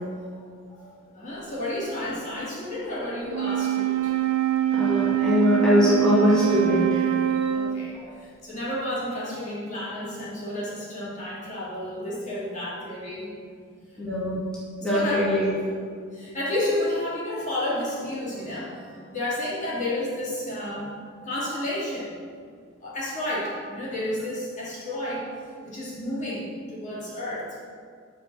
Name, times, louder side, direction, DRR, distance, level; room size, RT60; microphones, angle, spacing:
voice 1, 1.1-4.1 7.5-13.3 14.8-15.3 16.1-20.9 21.2-22.1 22.8-25.3 25.6-27.6, left 1 dB, 35° left, -8 dB, 2.7 m, -31 dB
Wind instrument woodwind instrument, 3.2-8.0, right 12 dB, 85° right, 0.5 m, -24 dB
voice 2, 4.7-7.1 7.4-7.5 7.9-8.1 14.0-14.4 14.8-15.5, left 1 dB, 5° left, -11 dB, 2.4 m, -22 dB
7.5 x 5.6 x 7.3 m, 2.1 s
head